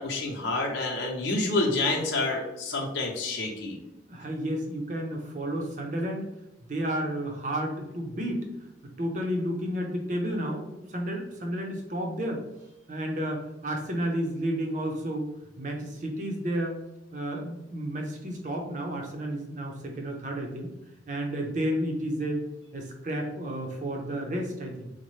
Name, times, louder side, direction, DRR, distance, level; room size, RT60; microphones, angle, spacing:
voice 1, 0.0-3.8, left 2 dB, 85° left, -1 dB, 0.8 m, -28 dB
voice 2, 4.1-6.3 6.7-8.5 9.0-12.4 12.9-15.3 15.6-16.7 17.1-20.7 21.1-22.4 22.7-24.9, right 1 dB, 40° right, 2 dB, 0.6 m, -31 dB
4.0 x 2.1 x 3.1 m, 0.94 s
head